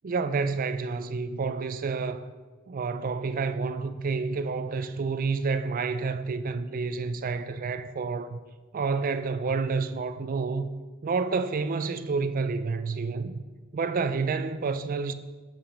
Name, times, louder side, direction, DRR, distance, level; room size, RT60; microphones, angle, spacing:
voice 1, 0.0-2.2 2.7-8.4 8.7-10.7 11.0-13.4 13.7-15.1, right 4 dB, 45° right, 0.4 m, -29 dB
7.2 x 5.6 x 5.1 m
head